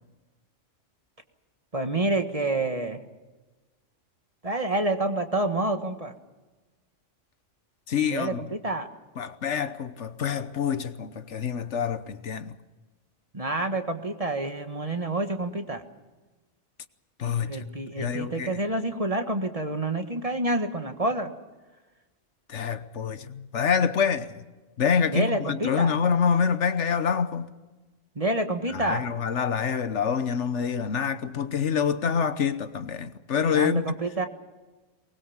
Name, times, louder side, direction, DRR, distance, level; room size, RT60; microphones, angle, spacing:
voice 1, 1.7-3.0 4.4-6.1 8.1-8.9 13.3-15.8 17.5-21.3 25.1-26.0 28.1-29.1 33.5-34.3, right 2 dB, 30° right, 1.6 m, -28 dB
voice 2, 7.9-8.4 9.2-12.6 17.2-17.7 18.0-18.6 22.5-24.4 24.8-27.5 28.7-34.0, left 6 dB, 70° left, 1.3 m, -26 dB
23.0 x 20.5 x 7.2 m
omnidirectional pair, 1.3 m